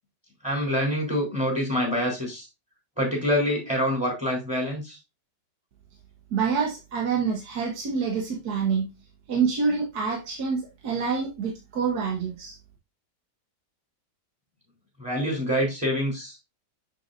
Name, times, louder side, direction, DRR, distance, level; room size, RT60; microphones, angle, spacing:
voice 1, 0.4-2.5 3.0-5.0 15.0-16.4, equal, 5° right, -1 dB, 3.6 m, -26 dB
voice 2, 6.3-8.9 9.3-12.6, right 5 dB, 65° right, 0 dB, 1.7 m, -27 dB
7.3 x 6.4 x 2.5 m, 0.24 s
omnidirectional pair, 1.8 m